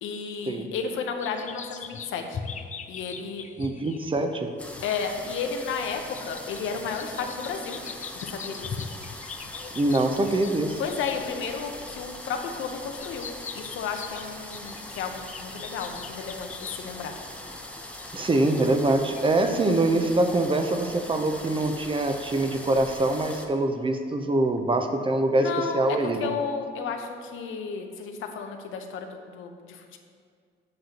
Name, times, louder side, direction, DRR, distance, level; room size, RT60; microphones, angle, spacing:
voice 1, 0.0-2.4 2.9-3.5 4.8-7.8 8.2-8.8 10.8-17.1 25.3-30.0, left 5 dB, 80° left, 5 dB, 0.7 m, -33 dB
sound 1, 1.2-11.3 11.9-17.4 18.0-18.1 18.6-18.7 19.1-19.2 19.6-20.0, left 6 dB, 40° left, 0.4 m, -41 dB
voice 2, 3.6-4.5 9.8-10.8 18.1-26.3, right 2 dB, 25° right, 6 dB, 0.6 m, -24 dB
sound 2, 4.6-23.5, left 1 dB, 5° left, 0.7 m, -41 dB
7.8 x 7.4 x 2.9 m, 2.1 s
cardioid pair, 90°, 20 cm